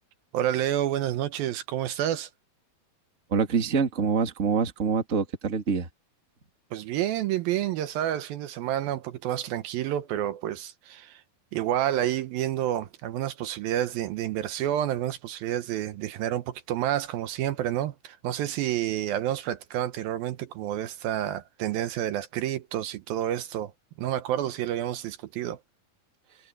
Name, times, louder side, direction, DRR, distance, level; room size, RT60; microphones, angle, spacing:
voice 1, 0.3-2.3 6.7-11.2 11.5-23.7 24.0-25.6, right 12 dB, 75° right, 2.6 m, -29 dB
voice 2, 3.3-5.9, right 6 dB, 30° right, 1.7 m, -25 dB
omnidirectional pair, 4.4 m